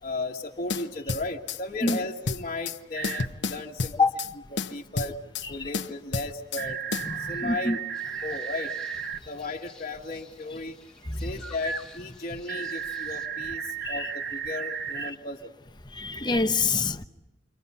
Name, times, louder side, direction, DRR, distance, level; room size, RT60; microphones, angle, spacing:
voice 1, 0.0-4.1 4.5-5.1 5.5-6.8 7.2-7.8 8.2-8.7 9.3-10.8 11.1-15.6, left 2 dB, 40° left, 1.6 m, -35 dB
sound 1, 0.7-1.6 1.9-2.8 3.0-4.3 4.6-5.5 5.7-6.6 6.9-7.1, left 4 dB, 70° left, 0.9 m, -31 dB
sound 2, 2.9-3.3 6.6-9.2 12.5-15.1, right 7 dB, 55° right, 1.1 m, -34 dB
voice 2, 7.0-7.8 11.1-11.3 13.8-14.1 15.9-17.0, left 3 dB, 25° left, 0.9 m, -26 dB
sound 3, 7.9-13.3, right 1 dB, 5° left, 2.2 m, -44 dB
29.0 x 25.0 x 5.6 m
head